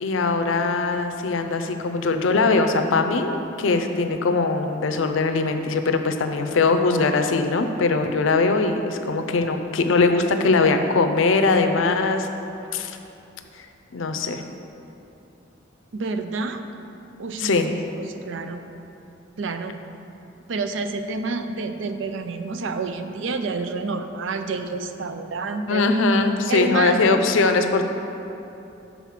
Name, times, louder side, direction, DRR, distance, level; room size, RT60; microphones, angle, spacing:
voice 1, 0.0-12.3 12.7-13.0 13.5-13.7 13.9-14.4 17.4-17.7 25.7-27.8, left 3 dB, 80° left, 7 dB, 0.5 m, -21 dB
voice 2, 15.9-16.7 17.2-18.6 19.4-19.8 20.5-25.8 26.5-27.0, right 3 dB, 75° right, 8 dB, 0.4 m, -29 dB
7.4 x 4.0 x 5.7 m, 2.8 s
head